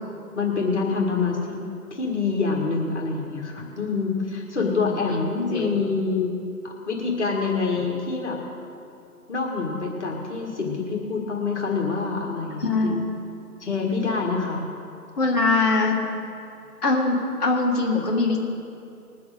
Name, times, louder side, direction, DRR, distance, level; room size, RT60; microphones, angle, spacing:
voice 1, 0.4-1.6 1.9-6.4 6.6-8.4 9.3-13.0 13.6-14.6, left 4 dB, 45° left, -1 dB, 1.8 m, -26 dB
voice 2, 12.6-13.0 15.2-16.0 16.8-18.4, left 3 dB, 25° left, -6 dB, 1.8 m, -22 dB
20.5 x 7.0 x 5.0 m, 2.5 s
figure-of-eight pair, 150°, 47 cm